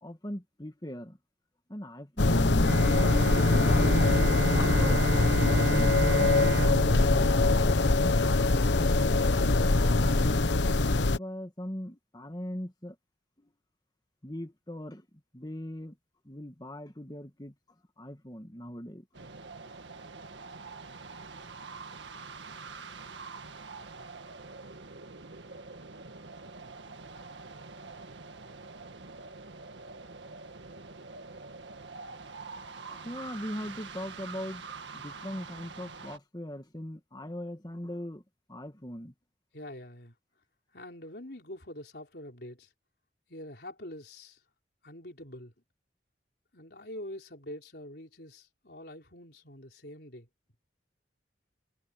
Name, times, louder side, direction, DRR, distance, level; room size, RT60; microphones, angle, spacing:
voice 1, 0.0-1.2 1.7-3.7 4.7-5.1 10.9-13.0 13.4-13.5 14.2-15.1 15.3-16.0 16.2-17.5 18.0-19.1 32.9-34.6 34.9-38.2 38.5-39.1, equal, 20° left, 1.8 m, -40 dB
sound 1, 2.2-11.2, left 2 dB, 75° left, 1.0 m, -23 dB
Bowed string instrument, 2.6-8.5, right 2 dB, 55° right, 1.6 m, -32 dB
sound 2, 19.1-36.2, right 4 dB, 80° right, 1.8 m, -45 dB
voice 2, 39.5-40.1 40.7-42.7 43.3-44.4 44.8-45.5 46.5-50.3, left 1 dB, 60° left, 4.3 m, -45 dB
head